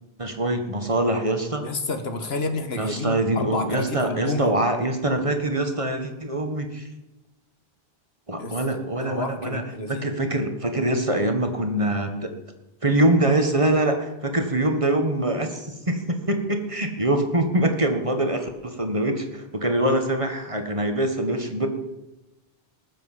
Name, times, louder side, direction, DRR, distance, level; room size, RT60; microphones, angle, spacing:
voice 1, 0.2-1.6 2.7-6.8 8.3-12.3 12.8-21.7, right 1 dB, 30° right, 5 dB, 1.6 m, -24 dB
voice 2, 1.6-4.5 8.4-8.6 9.0-10.1, left 2 dB, 80° left, 7 dB, 1.8 m, -30 dB
19.5 x 7.5 x 7.4 m, 0.99 s
omnidirectional pair, 1.0 m